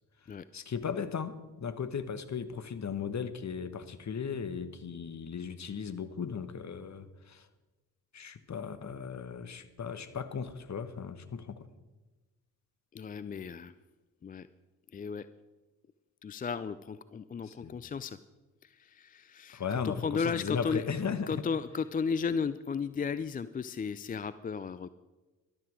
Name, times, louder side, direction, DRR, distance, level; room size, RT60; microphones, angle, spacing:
voice 1, 0.5-7.5 8.1-11.6 17.4-17.8 19.5-21.5, left 6 dB, 35° left, 11 dB, 1.3 m, -37 dB
voice 2, 12.9-13.7 14.2-14.5 14.9-15.3 16.2-18.2 18.8-20.8 21.3-24.9, left 5 dB, 20° left, 15 dB, 0.4 m, -34 dB
14.0 x 12.0 x 5.0 m, 1.2 s
hypercardioid pair, 45°, 47 cm